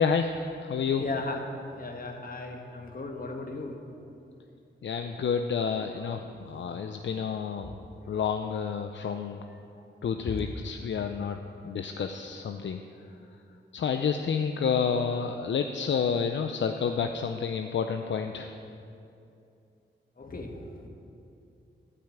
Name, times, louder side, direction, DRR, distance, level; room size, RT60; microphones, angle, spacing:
voice 1, 0.0-1.0 4.8-7.7 8.1-9.4 10.0-11.4 11.6-12.8 13.7-18.5, left 6 dB, 70° left, 6 dB, 0.5 m, -29 dB
voice 2, 1.0-1.4 1.8-3.8 5.9-6.0 6.5-6.6 7.6-7.7 10.2-10.6 20.2-20.9, left 2 dB, 50° left, 3 dB, 1.4 m, -36 dB
12.0 x 5.7 x 8.8 m, 2.6 s
cardioid pair, 75°, 19 cm